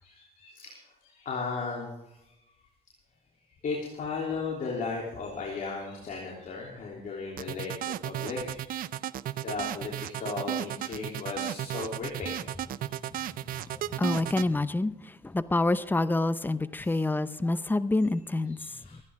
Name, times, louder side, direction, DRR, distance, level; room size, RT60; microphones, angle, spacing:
voice 1, 0.0-2.3 3.6-8.7 9.4-12.6 16.8-17.0 18.5-19.0, left 4 dB, 50° left, 3.3 m, -36 dB
sound 1, 7.4-14.5, right 12 dB, 55° right, 0.5 m, -34 dB
voice 2, 14.0-18.6, left 2 dB, 10° left, 0.7 m, -27 dB
25.0 x 9.8 x 3.7 m
cardioid pair, 110°, 17 cm